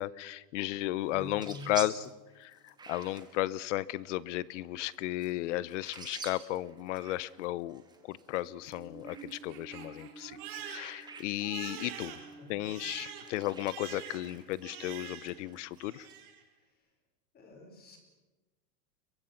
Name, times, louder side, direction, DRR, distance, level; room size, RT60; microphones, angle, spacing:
voice 1, 0.0-2.1 2.4-10.4 10.7-12.1 12.5-16.1, left 16 dB, 50° left, 20 dB, 0.9 m, -34 dB
sound 1, 1.0-16.2, right 4 dB, 10° right, 1.9 m, -50 dB
voice 2, 1.1-1.7 12.4-12.5 17.3-18.0, left 1 dB, 20° left, 5 dB, 5.0 m, -46 dB
Crying sobbing, 8.5-15.5 15.8-16.4, right 8 dB, 65° right, 4.7 m, -46 dB
30.0 x 23.0 x 5.9 m, 1.1 s
supercardioid pair, 165°, 47 cm